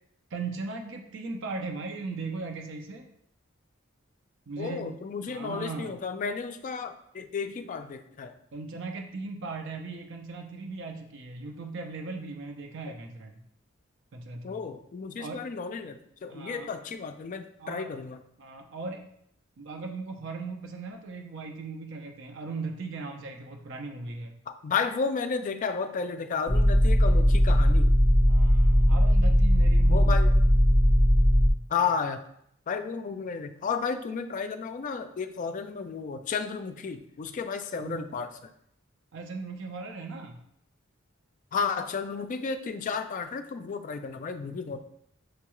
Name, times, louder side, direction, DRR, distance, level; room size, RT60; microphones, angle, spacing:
voice 1, 0.3-3.0 4.5-4.9 5.3-6.0 8.5-13.3 14.1-14.6 15.2-15.4 16.3-16.7 17.6-17.9 18.4-19.1 19.6-24.4 28.3-30.2 37.8-38.0 39.1-40.4, right 3 dB, 65° right, 3 dB, 0.6 m, -38 dB
voice 2, 4.6-8.3 14.4-18.2 24.6-27.9 29.9-30.3 31.7-32.2 32.7-38.3 41.5-44.8, left 5 dB, 40° left, 8 dB, 0.3 m, -32 dB
sound 1, 26.5-31.5, equal, 20° left, 0.7 m, -19 dB
6.4 x 2.3 x 3.0 m, 0.72 s
head